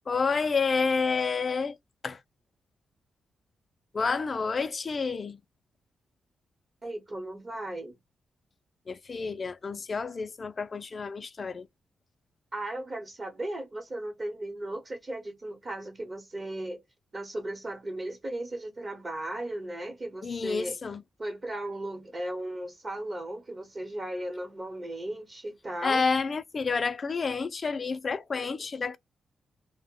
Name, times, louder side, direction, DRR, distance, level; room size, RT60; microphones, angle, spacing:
voice 1, 0.1-1.8 2.0-2.2 3.9-5.4 8.9-11.7 20.2-21.0 25.8-29.0, left 4 dB, 40° left, 0.3 m, -29 dB
voice 2, 6.8-8.0 12.5-16.8 17.1-20.8 21.2-26.0 28.3-28.5, right 1 dB, 30° right, 0.9 m, -36 dB
2.1 x 2.1 x 3.6 m
cardioid pair, 100°, 0 cm